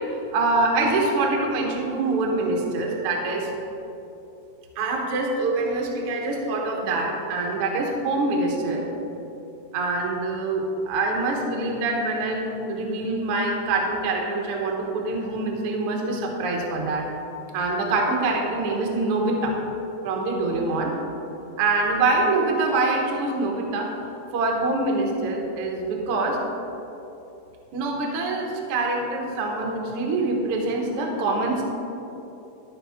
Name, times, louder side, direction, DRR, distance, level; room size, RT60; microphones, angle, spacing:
voice 1, 0.1-3.5 4.7-8.9 9.7-17.1 17.5-19.6 20.0-20.9 21.6-23.9 24.3-26.4 27.7-31.6, right 2 dB, 60° right, 0 dB, 1.6 m, -25 dB
14.0 x 5.2 x 3.5 m, 3.0 s
omnidirectional pair, 3.9 m